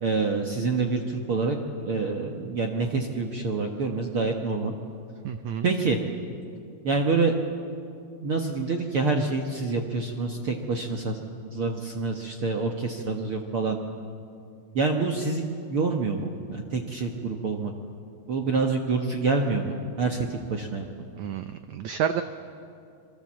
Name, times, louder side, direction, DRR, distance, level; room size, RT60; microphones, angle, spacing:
voice 1, 0.0-4.7 5.6-6.0 6.8-7.3 8.2-13.8 14.7-17.7 18.3-20.9, right 3 dB, 60° right, 2 dB, 1.4 m, -27 dB
voice 2, 5.2-5.7 21.2-22.2, right 8 dB, 80° right, 9 dB, 1.6 m, -29 dB
26.5 x 23.5 x 7.5 m, 2.4 s
omnidirectional pair, 4.2 m